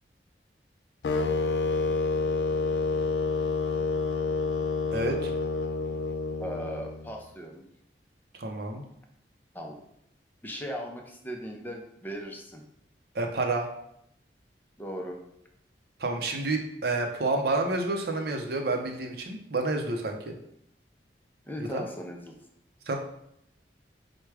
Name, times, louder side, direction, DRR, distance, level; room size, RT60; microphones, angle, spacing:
sound 1, 1.0-7.1, left 4 dB, 70° left, 0.4 m, -28 dB
voice 1, 4.9-5.3 8.3-8.8 13.1-13.7 16.0-20.3 21.6-21.8 22.9-23.0, right 2 dB, 60° right, 3 dB, 0.6 m, -29 dB
voice 2, 6.4-7.7 9.5-9.8 10.4-12.6 14.8-15.2 21.5-22.4, equal, 10° left, 2 dB, 0.5 m, -38 dB
4.6 x 2.2 x 4.7 m, 0.75 s
head